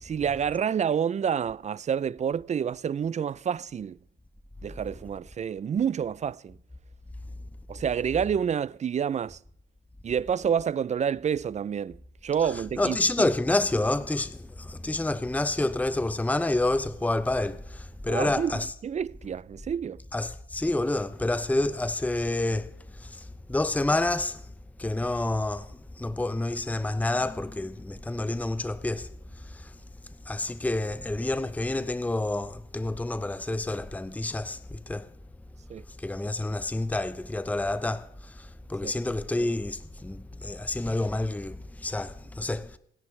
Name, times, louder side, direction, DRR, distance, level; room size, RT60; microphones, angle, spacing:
voice 1, 0.0-4.0 4.6-6.6 7.7-9.4 10.0-13.3 18.1-20.0 35.7-35.8 38.8-38.9, right 8 dB, 35° right, 0.5 m, -28 dB
voice 2, 12.8-18.7 20.1-24.5 24.8-29.1 29.4-29.7 30.3-35.1 36.0-42.8, left 2 dB, 5° left, 0.8 m, -29 dB
27.5 x 10.5 x 3.3 m
cardioid pair, 90°, 20 cm